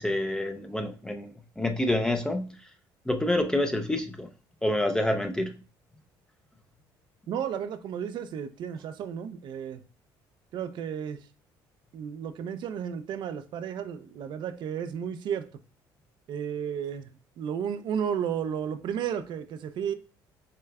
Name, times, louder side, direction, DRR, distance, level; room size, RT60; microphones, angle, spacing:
voice 1, 0.0-2.7 3.1-4.3 4.6-5.6, left 1 dB, 10° left, 0.5 m, -28 dB
voice 2, 7.3-9.8 10.5-11.3 11.9-15.5 16.3-17.1 17.4-19.9, right 8 dB, 60° right, 0.5 m, -33 dB
6.7 x 3.2 x 2.3 m
cardioid pair, 105°, 9 cm